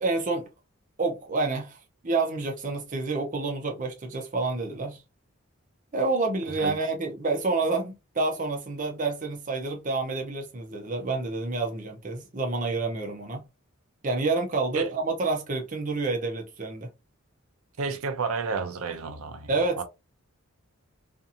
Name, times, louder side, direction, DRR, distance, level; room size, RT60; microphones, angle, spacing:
voice 1, 0.0-0.5 1.0-1.8 2.0-5.0 5.9-13.4 14.0-16.9 19.5-19.8, right 3 dB, 35° right, 0.6 m, -28 dB
voice 2, 17.8-19.5 19.8-19.9, right 4 dB, 75° right, 0.6 m, -31 dB
2.7 x 2.5 x 2.4 m
head